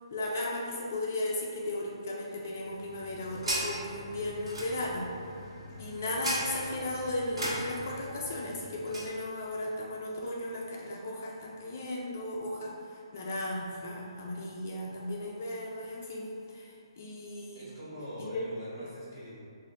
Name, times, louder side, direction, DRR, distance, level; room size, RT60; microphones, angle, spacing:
voice 1, 0.1-5.1 5.8-17.7 18.2-18.4, left 1 dB, 30° left, -2 dB, 0.3 m, -36 dB
sound 1, 2.6-9.2, right 1 dB, 80° right, 1.1 m, -38 dB
voice 2, 17.5-19.4, equal, 20° right, -9 dB, 0.8 m, -43 dB
3.2 x 2.4 x 3.6 m, 2.4 s
hypercardioid pair, 180°, 3 cm